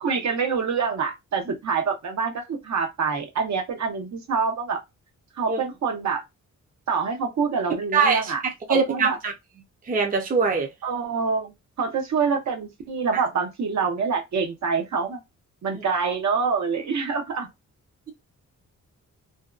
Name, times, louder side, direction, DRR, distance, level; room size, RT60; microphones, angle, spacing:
voice 1, 0.0-4.8 5.4-6.2 6.9-8.4 8.7-9.2 10.8-15.2 15.6-17.5, right 5 dB, 65° right, 0.8 m, -26 dB
voice 2, 7.9-8.3 8.7-9.3 9.9-10.7 13.1-13.2 15.7-15.8, right 5 dB, 30° right, 0.6 m, -22 dB
2.6 x 2.2 x 2.4 m
wide cardioid pair, 120°, 30 cm